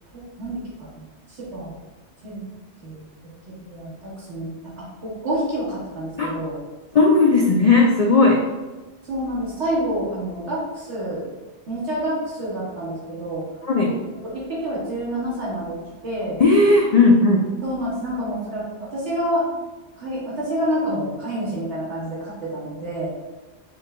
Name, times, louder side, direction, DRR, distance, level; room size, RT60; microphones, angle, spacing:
voice 1, 0.1-0.6 1.0-1.8 2.2-2.4 2.8-3.0 3.6-6.6 9.1-11.2 11.7-13.4 14.3-15.8 16.0-16.4 17.6-19.4 20.0-23.1, right 1 dB, 90° right, -9 dB, 1.9 m, -28 dB
voice 2, 6.9-8.4 13.6-14.0 16.4-17.5, left 3 dB, 55° left, -1 dB, 0.4 m, -16 dB
5.4 x 2.2 x 3.7 m, 1.2 s
omnidirectional pair, 1.1 m